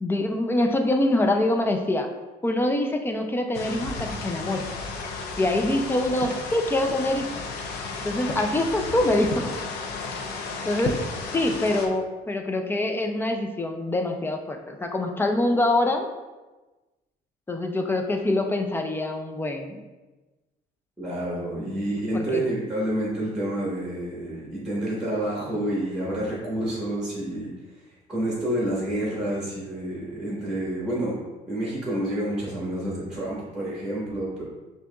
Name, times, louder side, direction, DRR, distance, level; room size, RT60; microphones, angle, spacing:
voice 1, 0.0-2.1 2.4-4.6 5.4-7.4 8.0-9.5 10.7-11.0 11.3-16.1 17.5-19.8 22.1-22.4, left 1 dB, 15° left, 4 dB, 0.4 m, -25 dB
sound 1, 3.5-11.9, left 4 dB, 80° left, 0.6 m, -33 dB
voice 2, 21.0-27.5 28.1-31.2 31.5-34.4, right 1 dB, 5° right, -6 dB, 1.2 m, -28 dB
6.0 x 2.8 x 2.3 m, 1.2 s
cardioid pair, 130°, 16 cm